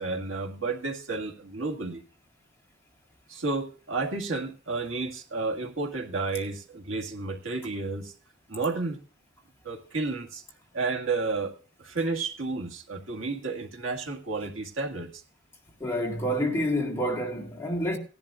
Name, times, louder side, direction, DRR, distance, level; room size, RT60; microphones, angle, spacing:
voice 1, 0.0-2.0 3.3-8.1 8.5-9.0 9.6-10.4 10.7-11.5 11.8-15.2, right 3 dB, 80° right, 1.9 m, -31 dB
voice 2, 15.8-18.0, equal, 15° left, 1.9 m, -28 dB
18.0 x 11.0 x 2.5 m
head